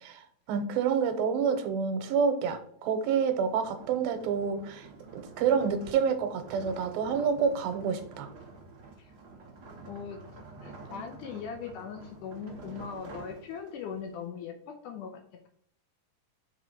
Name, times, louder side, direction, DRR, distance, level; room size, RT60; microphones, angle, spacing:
voice 1, 0.0-4.9 5.1-8.3, right 6 dB, 80° right, 8 dB, 2.7 m, -28 dB
sound 1, 3.0-14.0, right 3 dB, 50° right, 1.2 m, -48 dB
voice 2, 9.9-10.2 10.6-15.5, left 7 dB, 75° left, 4 dB, 2.0 m, -40 dB
5.7 x 4.8 x 5.5 m, 0.65 s
omnidirectional pair, 4.3 m